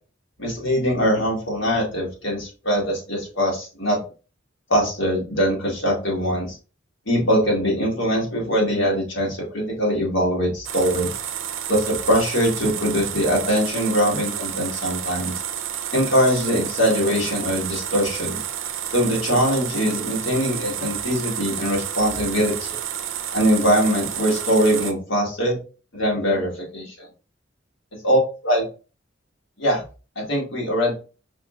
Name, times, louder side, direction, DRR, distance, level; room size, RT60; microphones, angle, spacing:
voice 1, 0.4-4.0 4.7-6.6 7.1-11.1 11.7-15.3 15.9-18.4 18.9-22.8 23.3-25.6 25.9-27.1 28.0-28.2 28.4-28.6 29.6-29.8 30.2-30.9, equal, 70° left, -2 dB, 1.8 m, -22 dB
Film Projector - Long Run with Finish, 10.6-24.9, right 9 dB, 90° right, 0.5 m, -30 dB
4.8 x 3.1 x 2.5 m, 0.35 s
head